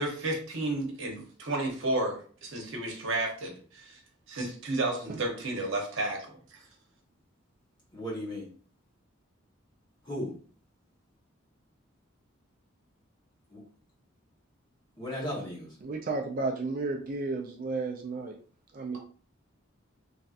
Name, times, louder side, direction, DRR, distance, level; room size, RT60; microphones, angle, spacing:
voice 1, 0.0-4.0 4.3-6.3, right 2 dB, 70° right, 1 dB, 0.8 m, -32 dB
voice 2, 7.9-8.5 10.0-10.3 13.5-13.6 15.0-15.7, equal, 20° left, -6 dB, 1.0 m, -35 dB
voice 3, 15.8-18.4 18.7-19.0, right 3 dB, 45° right, 2 dB, 0.3 m, -33 dB
3.1 x 2.7 x 2.4 m, 0.43 s
head